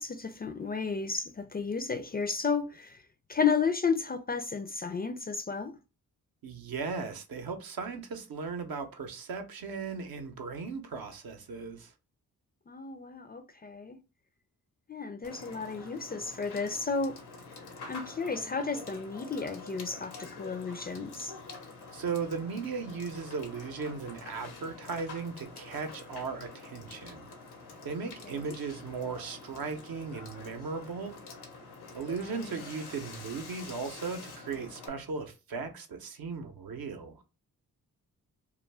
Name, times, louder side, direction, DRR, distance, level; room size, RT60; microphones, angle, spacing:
voice 1, 0.0-3.0 3.3-5.8 12.7-14.0 14.9-17.2 17.9-21.4 28.0-28.6 32.2-32.6, left 5 dB, 25° left, 0.3 m, -33 dB
voice 2, 6.4-11.9 21.9-27.3 27.8-31.2 31.9-37.2, right 5 dB, 70° right, 0.7 m, -37 dB
Water / Water tap faucet / Sink (filling or washing), 15.2-34.9, left 3 dB, 90° left, 0.7 m, -47 dB
2.3 x 2.2 x 3.3 m
supercardioid pair, 45°, 38 cm